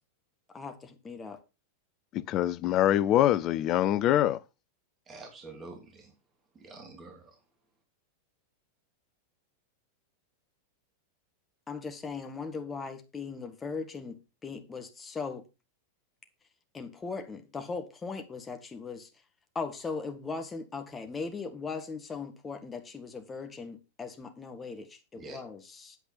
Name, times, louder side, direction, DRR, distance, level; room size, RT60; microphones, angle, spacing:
voice 1, 0.5-1.4 11.7-15.4 16.7-19.1 19.5-26.0, left 4 dB, 15° left, 1.7 m, -39 dB
voice 2, 2.1-4.4, left 12 dB, 35° left, 0.7 m, -24 dB
voice 3, 5.1-6.1 6.5-7.4 25.1-25.4, right 3 dB, 25° right, 3.1 m, -46 dB
9.1 x 7.9 x 4.2 m
figure-of-eight pair, 90°, 0 cm